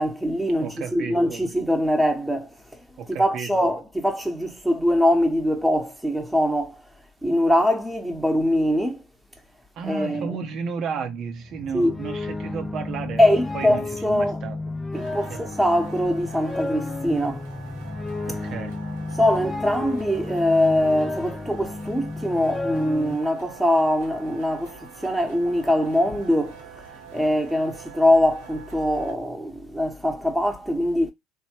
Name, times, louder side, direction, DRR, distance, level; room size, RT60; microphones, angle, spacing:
voice 1, 0.0-2.5 3.2-6.8 7.2-9.0 9.9-10.4 11.7-12.0 13.2-14.4 14.9-17.4 19.2-26.6 27.1-31.1, left 1 dB, 5° right, 0.9 m, -22 dB
voice 2, 0.6-1.4 3.0-3.7 9.8-13.2 13.5-14.7 15.3-15.4 18.3-18.8, right 6 dB, 55° right, 0.5 m, -33 dB
sound 1, 11.4-23.2, left 3 dB, 20° left, 0.4 m, -32 dB
sound 2, 14.9-29.1, right 6 dB, 85° right, 0.8 m, -44 dB
3.1 x 2.1 x 2.9 m
hypercardioid pair, 65°, 0 cm